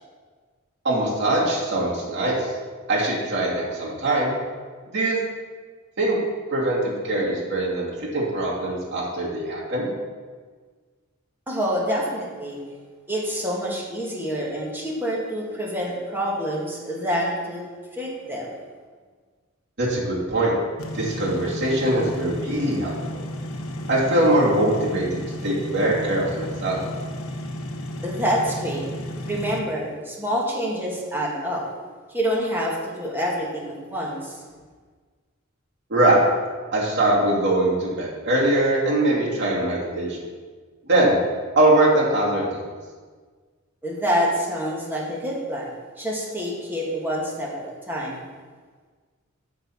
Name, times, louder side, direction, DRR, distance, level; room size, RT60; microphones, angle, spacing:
voice 1, 0.8-2.5 2.9-4.3 4.9-5.2 6.0-6.2 6.5-9.9 19.8-20.5 20.9-23.2 23.9-26.8 35.9-36.2 36.7-40.2 40.9-41.1 41.6-42.6, right 1 dB, 55° right, -6 dB, 2.7 m, -22 dB
voice 2, 11.5-12.6 13.1-17.7 17.9-18.5 28.0-28.8 29.3-31.7 32.1-34.4 43.8-48.3, equal, 10° right, -4 dB, 1.9 m, -27 dB
sound 1, 20.8-29.6, left 1 dB, 85° left, 0.9 m, -33 dB
8.7 x 4.6 x 7.2 m, 1.5 s
head